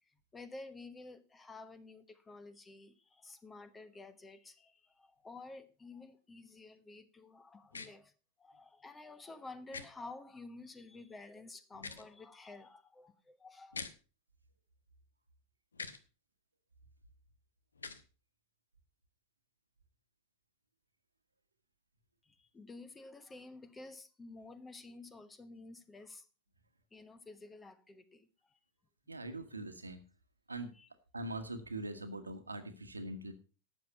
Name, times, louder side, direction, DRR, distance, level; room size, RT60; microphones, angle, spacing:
voice 1, 0.0-8.1 8.4-13.8 22.2-26.3 26.9-28.6 30.7-30.9, left 3 dB, 15° left, 14 dB, 1.1 m, -52 dB
sound 1, 7.7-7.9 9.7-9.9 11.7-12.1 13.7-13.9 15.7-16.0 17.7-18.0, left 4 dB, 75° left, 1.0 m, -43 dB
voice 2, 29.1-30.0 30.5-30.7 31.1-33.3, right 1 dB, 80° right, 8 dB, 1.5 m, -42 dB
12.0 x 7.8 x 5.5 m, 0.35 s
figure-of-eight pair, 90°, 0 cm